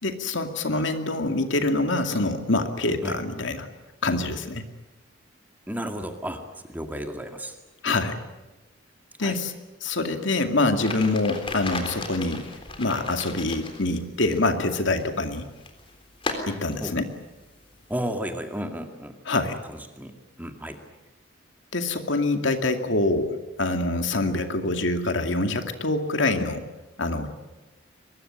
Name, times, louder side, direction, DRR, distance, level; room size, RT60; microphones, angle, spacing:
voice 1, 0.0-3.7 4.0-4.7 7.8-8.2 9.2-9.5 9.8-12.5 12.8-15.4 16.5-17.1 19.3-19.6 21.7-26.6 27.0-27.3, left 2 dB, 70° left, 6 dB, 2.4 m, -25 dB
voice 2, 5.7-6.4 6.7-7.5 7.9-8.0 9.2-9.4 16.8-16.9 17.9-19.2 20.0-20.8, equal, 10° right, 5 dB, 2.1 m, -33 dB
sound 1, 10.8-18.0, left 3 dB, 25° left, 3.6 m, -37 dB
23.5 x 21.5 x 9.9 m, 1.1 s
head